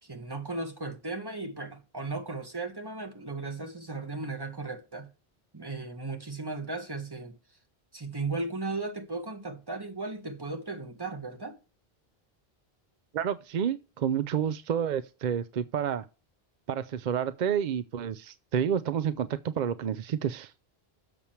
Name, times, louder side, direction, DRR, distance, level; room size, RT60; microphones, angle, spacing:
voice 1, 0.0-5.1 5.5-7.4 7.9-11.6, right 3 dB, 25° right, 1.4 m, -36 dB
voice 2, 13.1-16.1 16.7-20.5, right 8 dB, 55° right, 0.5 m, -29 dB
7.1 x 6.7 x 4.4 m
omnidirectional pair, 1.1 m